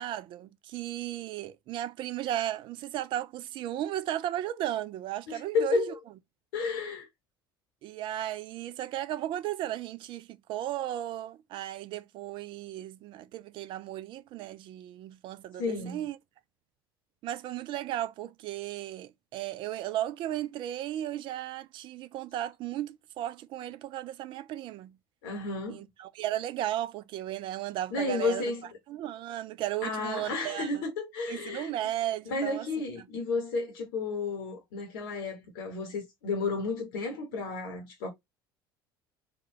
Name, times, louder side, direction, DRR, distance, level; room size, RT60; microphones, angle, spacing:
voice 1, 0.0-5.9 7.8-16.2 17.2-25.0 25.7-28.5 28.9-30.8 31.3-32.7, right 13 dB, 45° right, 0.4 m, -35 dB
voice 2, 5.3-6.0 6.5-7.1 15.6-16.0 25.2-25.9 27.9-28.7 29.8-31.7 32.3-38.1, left 3 dB, 65° left, 1.0 m, -32 dB
3.6 x 2.2 x 2.6 m
figure-of-eight pair, 65°, 12 cm